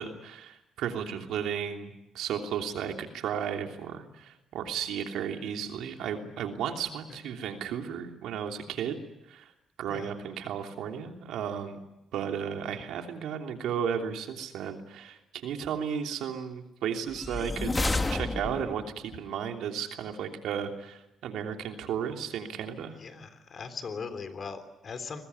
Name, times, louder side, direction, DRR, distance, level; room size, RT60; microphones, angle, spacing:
voice 1, 0.0-9.0 9.3-9.5 9.8-11.8 12.1-17.8 18.1-23.0, right 8 dB, 85° right, 4 dB, 3.1 m, -34 dB
voice 2, 6.9-7.2 9.9-10.1 12.5-12.6 23.0-25.2, left 5 dB, 45° left, 10 dB, 3.5 m, -40 dB
sound 1, 17.1-18.9, left 2 dB, 20° left, 1.9 m, -30 dB
24.0 x 20.5 x 9.7 m, 0.90 s
cardioid pair, 90°, 0 cm